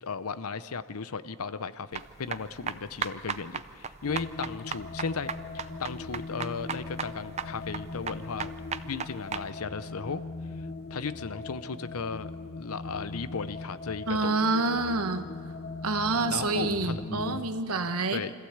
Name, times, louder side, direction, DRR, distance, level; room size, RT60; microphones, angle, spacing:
voice 1, 0.0-8.5 8.8-10.2 10.9-12.3 12.6-14.3 16.3-16.9 18.1-18.3, left 5 dB, 85° left, 13 dB, 0.7 m, -35 dB
sound 1, 1.9-9.5, right 6 dB, 30° right, 0.5 m, -36 dB
sound 2, 4.0-17.4, left 3 dB, 45° left, 1.0 m, -40 dB
voice 2, 14.1-15.3 15.8-18.2, right 3 dB, 85° right, 9 dB, 1.2 m, -27 dB
25.0 x 15.0 x 8.0 m, 2.6 s
head